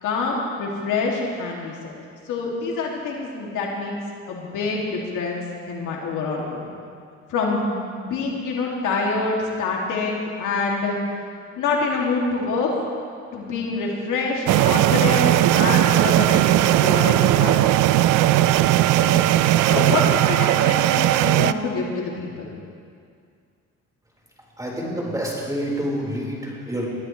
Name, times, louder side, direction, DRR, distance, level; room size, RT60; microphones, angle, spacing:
voice 1, 0.0-1.9 2.2-4.0 4.3-5.4 5.7-6.6 7.3-11.0 11.6-12.8 13.3-17.7 19.0-22.5, left 3 dB, 85° left, -2 dB, 2.5 m, -26 dB
sound 1, 14.5-21.5, right 14 dB, 85° right, 0.5 m, -18 dB
voice 2, 24.6-26.9, equal, 10° right, -3 dB, 4.5 m, -27 dB
22.5 x 13.5 x 3.3 m, 2.2 s
cardioid pair, 90°, 30 cm